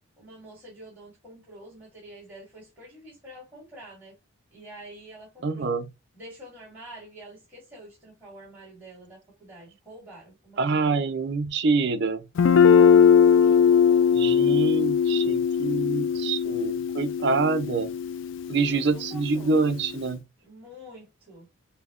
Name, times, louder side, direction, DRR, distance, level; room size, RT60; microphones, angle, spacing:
voice 1, 0.2-4.1 4.5-5.7 6.1-11.1 13.2-14.2 18.6-19.5 20.4-21.5, right 1 dB, 10° right, 1.8 m, -47 dB
voice 2, 5.4-5.9 10.6-12.3 14.1-17.9 18.5-20.2, right 4 dB, 55° right, 0.5 m, -26 dB
Guitar, 12.4-20.1, left 7 dB, 65° left, 0.3 m, -21 dB
5.4 x 2.1 x 2.4 m
head